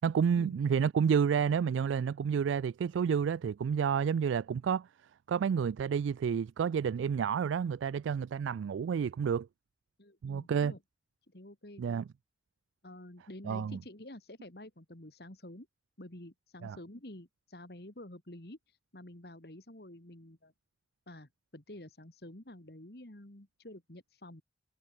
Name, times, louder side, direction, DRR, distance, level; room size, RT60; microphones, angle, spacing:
voice 1, 0.0-4.9 5.3-9.5 10.2-10.7 11.8-12.1 13.4-13.8 16.6-16.8, right 7 dB, 90° right, 0.3 m, -30 dB
voice 2, 10.0-10.8 11.3-11.8 12.8-15.7 16.0-20.5 21.1-24.4, left 1 dB, 55° left, 2.5 m, -49 dB
head